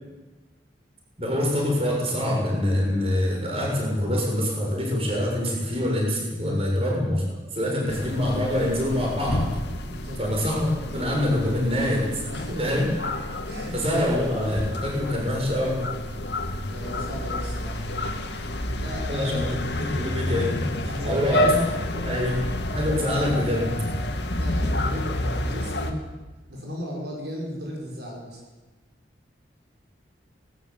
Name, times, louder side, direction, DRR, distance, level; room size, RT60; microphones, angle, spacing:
voice 1, 1.2-9.6 10.2-12.1 12.6-12.9 13.7-15.9 19.1-20.6 21.0-21.6 21.9-22.4 22.7-23.6, left 1 dB, 30° right, -1 dB, 7.0 m, -25 dB
sound 1, 7.9-25.9, left 1 dB, 70° left, 2.5 m, -29 dB
voice 2, 9.8-10.2 12.3-12.8 13.4-14.2 16.7-18.0 18.3-19.5 20.9-21.8 24.4-26.0 26.5-28.4, equal, 65° right, -2 dB, 6.2 m, -36 dB
20.0 x 18.0 x 8.9 m, 1.2 s
head